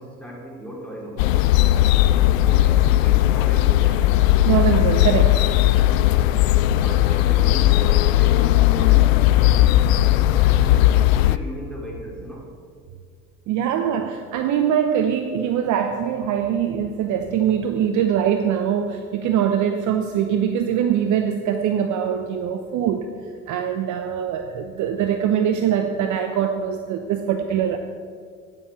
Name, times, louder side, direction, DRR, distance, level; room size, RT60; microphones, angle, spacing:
voice 1, 0.0-1.4 2.0-4.1 5.6-6.1 6.5-9.3 9.8-12.5 13.7-13.9, right 1 dB, 5° left, -3 dB, 3.5 m, -37 dB
sound 1, 1.2-11.4, left 14 dB, 65° left, 0.5 m, -17 dB
voice 2, 4.5-5.4 13.5-23.1 23.5-27.8, right 8 dB, 45° right, 6 dB, 0.8 m, -22 dB
12.5 x 9.9 x 4.6 m, 2.1 s
figure-of-eight pair, 60°, 43 cm